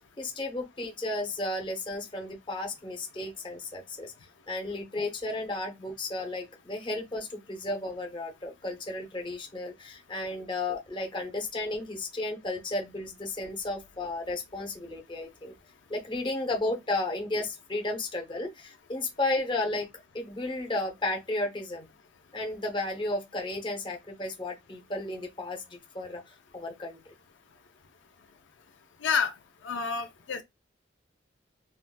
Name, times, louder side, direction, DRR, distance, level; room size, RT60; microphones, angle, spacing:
voice 1, 0.2-4.1 4.5-15.5 15.9-19.9 20.1-21.9 22.3-27.0, left 2 dB, 25° left, 0.7 m, -33 dB
voice 2, 29.0-29.3 29.6-30.4, left 6 dB, 75° left, 0.5 m, -28 dB
3.5 x 2.6 x 2.2 m
head